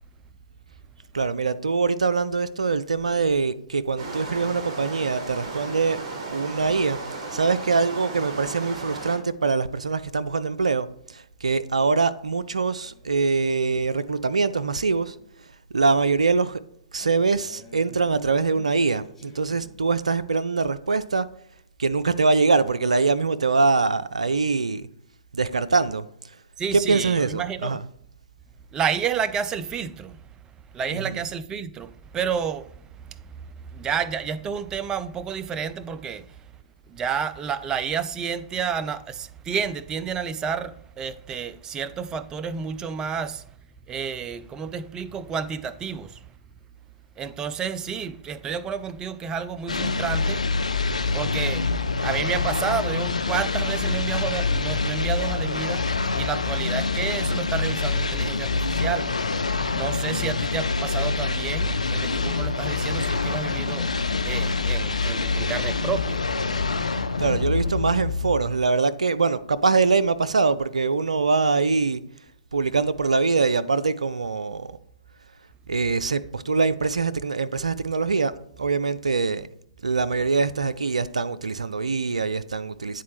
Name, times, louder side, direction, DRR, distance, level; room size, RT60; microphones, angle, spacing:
voice 1, 1.1-6.0 6.3-7.0 7.3-15.1 15.7-16.6 16.9-21.3 21.8-24.9 25.3-26.1 26.7-27.8 30.9-31.2 67.2-72.0 72.5-74.8 75.7-78.3 78.6-79.5 79.8-83.0, right 4 dB, 85° right, 0.4 m, -23 dB
sound 1, 4.0-9.2, right 3 dB, 50° right, 1.7 m, -35 dB
Male speech man speaking, 12.4-15.4 17.0-20.0, left 3 dB, 5° left, 2.5 m, -50 dB
voice 2, 26.6-27.8 28.7-30.2 30.7-33.3 33.7-36.4 36.9-43.5 43.9-46.2 47.2-50.5 51.1-55.9 56.1-59.4 59.7-66.2, right 7 dB, 20° right, 0.4 m, -30 dB
sound 2, 49.7-68.7, left 4 dB, 90° left, 0.5 m, -26 dB
9.2 x 4.0 x 3.1 m
figure-of-eight pair, 120°, 4 cm